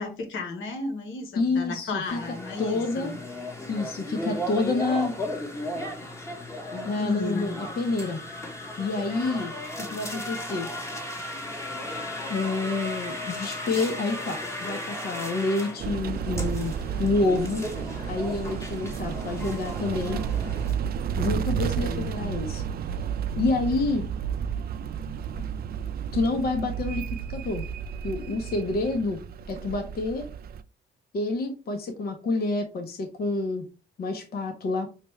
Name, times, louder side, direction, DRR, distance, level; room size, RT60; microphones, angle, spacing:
voice 1, 0.0-3.1 5.7-5.9 6.7-7.6 21.8-22.4, left 3 dB, 80° left, 4 dB, 1.1 m, -34 dB
voice 2, 1.4-2.2 2.6-3.1 3.7-5.1 6.8-8.2 8.8-10.7 12.3-17.7 18.1-20.2 21.2-22.6 23.3-24.0 25.4-25.5 26.1-27.0 27.3-27.7 28.0-29.2 29.5-30.3 31.1-33.7 34.0-34.9, left 3 dB, 50° left, 5 dB, 0.8 m, -28 dB
sound 1, 2.1-20.7, left 1 dB, 15° left, 1.1 m, -36 dB
sound 2, 15.8-30.6, right 8 dB, 50° right, 0.4 m, -32 dB
5.7 x 2.3 x 3.1 m, 0.33 s
cardioid pair, 90°, 20 cm